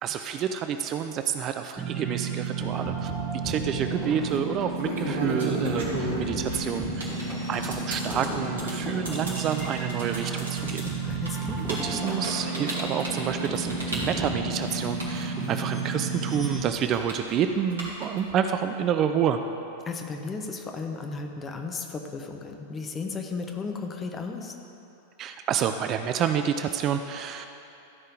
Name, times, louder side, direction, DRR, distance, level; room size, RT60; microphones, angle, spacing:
voice 1, 0.0-3.1 3.4-5.9 6.2-7.0 7.5-10.9 11.6-19.4 25.2-27.6, right 8 dB, 35° right, 8 dB, 0.5 m, -28 dB
sound 1, 1.8-16.6, right 4 dB, 15° right, 1.7 m, -32 dB
sound 2, 2.6-15.2, left 1 dB, ahead, 1.9 m, -39 dB
sound 3, 3.5-3.8 4.6-15.9 16.2-18.3, right 1 dB, 70° right, 2.9 m, -34 dB
voice 2, 11.0-11.7 19.8-24.5, left 4 dB, 20° left, 4 dB, 1.1 m, -35 dB
14.0 x 5.6 x 7.7 m, 2.8 s
figure-of-eight pair, 90°, 0 cm